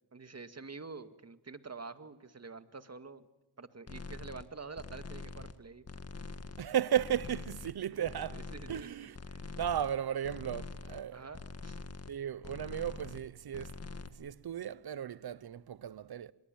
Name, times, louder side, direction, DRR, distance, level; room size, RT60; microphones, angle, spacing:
voice 1, 0.1-3.2 3.6-5.9 7.9-9.6 11.1-11.8, right 4 dB, 40° right, 2.1 m, -48 dB
sound 1, 3.9-4.4 4.7-5.6 5.8-6.7 6.9-7.8 8.0-8.8 9.1-10.0 10.2-11.0 11.3-12.2 12.4-13.3 13.5-14.1, left 3 dB, 40° left, 1.8 m, -44 dB
voice 2, 6.6-8.4 8.7-9.2 9.6-11.2 12.1-13.8 14.1-16.3, right 10 dB, 70° right, 1.0 m, -35 dB
25.0 x 22.5 x 9.1 m
cardioid pair, 60°, 39 cm